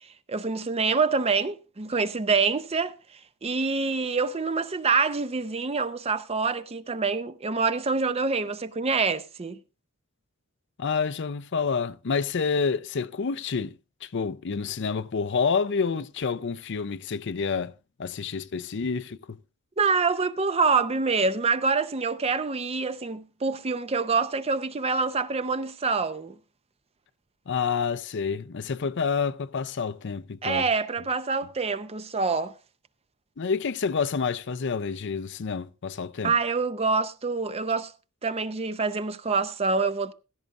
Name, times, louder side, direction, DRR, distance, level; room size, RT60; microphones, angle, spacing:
voice 1, 0.3-3.0 3.4-9.6 19.8-26.3 30.4-32.5 36.2-37.9 38.2-40.1, right 4 dB, 30° right, 0.6 m, -26 dB
voice 2, 10.8-13.7 14.0-17.7 18.0-19.4 27.5-30.7 33.4-36.3, left 5 dB, 55° left, 0.5 m, -28 dB
16.0 x 14.0 x 2.5 m
head